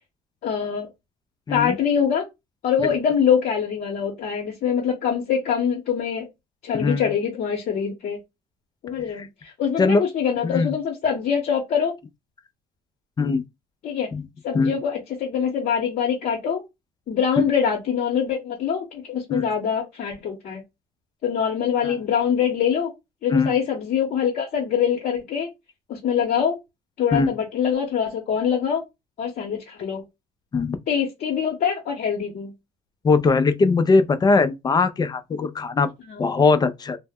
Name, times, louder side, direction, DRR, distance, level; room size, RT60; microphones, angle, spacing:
voice 1, 0.4-0.9 1.5-2.2 2.6-6.3 6.6-8.2 8.8-12.0 13.8-14.1 14.4-16.6 17.1-20.6 21.2-22.9 23.2-25.5 25.9-26.6 27.0-28.8 29.2-30.0 30.9-32.5 36.1-36.2, left 7 dB, 60° left, 0.8 m, -24 dB
voice 2, 6.7-7.1 9.1-9.3 9.8-10.0 10.4-10.8 13.2-13.4 14.1-14.2 14.5-14.8 17.4-17.5 19.3-19.5 21.8-21.9 23.3-23.5 27.1-27.3 30.5-30.8 33.0-35.9 36.2-37.0, left 4 dB, 25° left, 0.4 m, -20 dB
2.1 x 2.0 x 3.5 m
cardioid pair, 110°, 17 cm